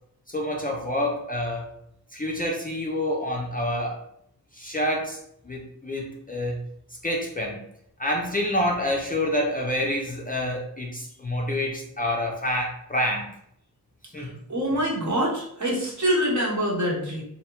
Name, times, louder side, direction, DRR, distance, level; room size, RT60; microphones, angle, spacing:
voice 1, 0.3-1.7 2.1-4.0 4.5-5.2 5.5-6.6 7.0-7.6 8.0-13.3 14.1-14.3, left 1 dB, 25° left, -1 dB, 0.4 m, -27 dB
voice 2, 14.2-17.2, equal, 50° right, -3 dB, 1.0 m, -25 dB
2.7 x 2.1 x 2.9 m, 0.72 s
wide cardioid pair, 65°, 38 cm